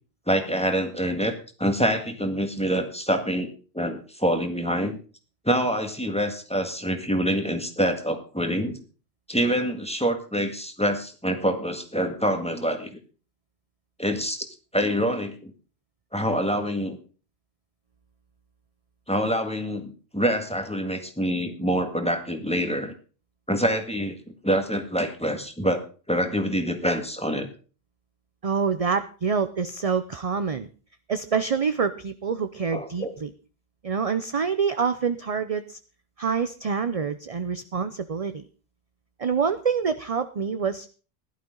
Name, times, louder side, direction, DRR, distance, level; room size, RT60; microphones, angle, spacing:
voice 1, 0.3-3.5 3.7-5.0 5.5-8.8 9.3-12.9 14.0-14.5 14.7-15.5 16.1-17.0 19.1-22.9 23.5-24.2 24.4-27.5 32.7-33.1, equal, 5° left, 6 dB, 1.8 m, -26 dB
voice 2, 28.4-30.7 31.1-33.3 33.8-35.8 36.2-38.4 39.2-40.9, right 6 dB, 40° right, 11 dB, 0.7 m, -26 dB
16.0 x 11.5 x 3.8 m, 0.36 s
omnidirectional pair, 1.0 m